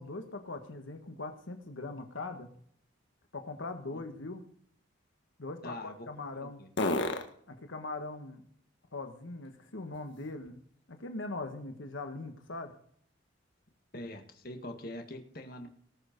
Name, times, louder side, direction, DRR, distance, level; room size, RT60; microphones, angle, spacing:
voice 1, 0.0-2.5 3.3-4.4 5.4-6.6 7.5-8.4 8.9-10.6 10.9-12.7, left 2 dB, 90° left, 6 dB, 1.4 m, -41 dB
sound 1, 1.8-10.8 11.3-15.1, left 2 dB, 70° left, 1.7 m, -43 dB
voice 2, 5.6-6.0 6.4-6.7 13.9-15.7, left 1 dB, 50° left, 5 dB, 1.8 m, -43 dB
19.5 x 6.6 x 5.2 m, 0.62 s
head